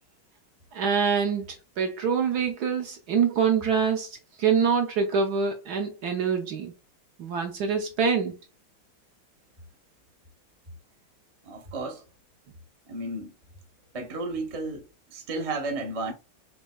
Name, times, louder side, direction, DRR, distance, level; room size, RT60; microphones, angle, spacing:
voice 1, 0.7-1.5 1.8-6.7 7.2-8.3, right 6 dB, 65° right, 1.1 m, -25 dB
voice 2, 11.4-12.0 12.9-13.3 13.9-16.1, right 2 dB, 45° right, 0.4 m, -33 dB
6.1 x 2.8 x 2.3 m
omnidirectional pair, 2.3 m